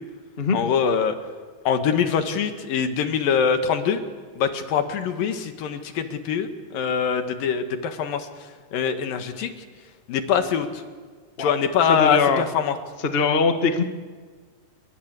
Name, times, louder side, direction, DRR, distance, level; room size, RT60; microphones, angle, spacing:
voice 1, 0.5-1.2 1.7-4.0 4.4-8.3 8.7-9.5 10.1-10.8 11.4-12.8, left 7 dB, 80° left, 7 dB, 3.4 m, -23 dB
voice 2, 11.4-12.4 13.0-13.8, left 4 dB, 55° left, 7 dB, 0.6 m, -22 dB
28.5 x 23.0 x 8.3 m, 1.5 s
omnidirectional pair, 3.9 m